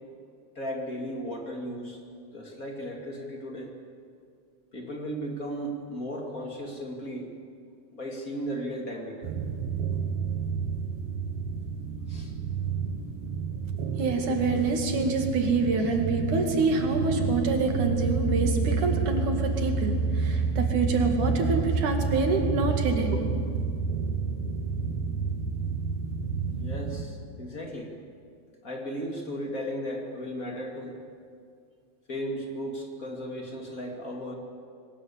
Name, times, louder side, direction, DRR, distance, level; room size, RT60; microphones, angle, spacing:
voice 1, 0.5-2.0 2.3-3.7 4.7-7.3 7.9-9.3 12.1-12.3 26.6-27.9 28.6-31.0 32.1-34.3, equal, 30° left, 1 dB, 2.5 m, -35 dB
sound 1, 9.2-27.1, right 5 dB, 60° right, 2.1 m, -29 dB
voice 2, 14.0-23.2, right 3 dB, 80° right, 3 dB, 3.8 m, -26 dB
22.0 x 19.5 x 8.5 m, 2.3 s
omnidirectional pair, 3.5 m